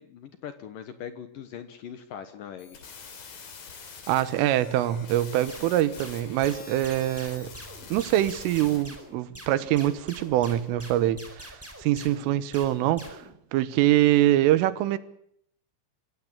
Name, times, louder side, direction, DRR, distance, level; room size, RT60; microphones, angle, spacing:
voice 1, 0.0-2.8, left 8 dB, 75° left, 2.0 m, -41 dB
sound 1, 2.6-8.8, left 5 dB, 50° left, 4.8 m, -45 dB
voice 2, 4.1-7.5 7.9-13.3 13.5-15.0, right 14 dB, 80° right, 3.6 m, -24 dB
sound 2, 5.5-13.3, right 1 dB, 5° right, 3.8 m, -45 dB
26.0 x 15.5 x 8.8 m
omnidirectional pair, 5.9 m